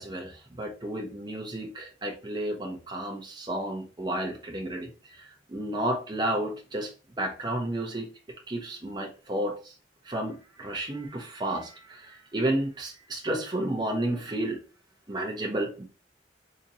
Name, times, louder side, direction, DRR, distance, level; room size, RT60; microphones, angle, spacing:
voice 1, 0.0-6.9 7.2-8.1 8.5-9.8 10.0-14.6 15.1-15.8, right 1 dB, 25° right, 0 dB, 0.7 m, -32 dB
3.9 x 2.8 x 2.8 m, 0.34 s
head